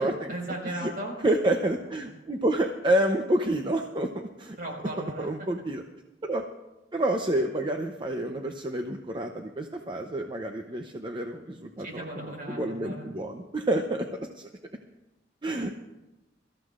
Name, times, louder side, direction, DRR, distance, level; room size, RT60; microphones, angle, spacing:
voice 1, 0.3-1.2 4.6-5.5 11.8-13.1 15.4-15.5, right 1 dB, 55° right, 0 dB, 4.9 m, -37 dB
voice 2, 1.2-4.1 4.4-4.6 5.2-5.8 6.2-6.5 6.9-12.0 12.5-14.1 14.3-14.5 15.4-15.7, right 1 dB, 25° right, 4 dB, 0.7 m, -28 dB
23.5 x 14.0 x 2.5 m, 1.0 s
head